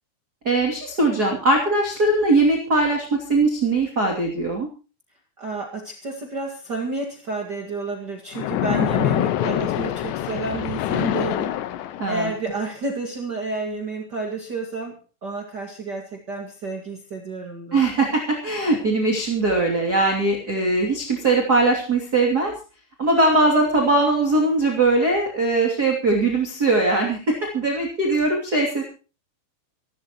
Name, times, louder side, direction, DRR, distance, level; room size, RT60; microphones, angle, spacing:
voice 1, 0.4-4.7 12.0-12.3 17.7-22.5 23.0-28.8, right 2 dB, 25° right, 0 dB, 2.4 m, -20 dB
voice 2, 5.4-11.5 12.1-17.8, right 3 dB, 65° right, 2 dB, 1.0 m, -30 dB
Splash splatter, 8.3-12.4, left 12 dB, 75° left, 3.1 m, -25 dB
26.5 x 12.5 x 3.0 m, 0.34 s
omnidirectional pair, 5.5 m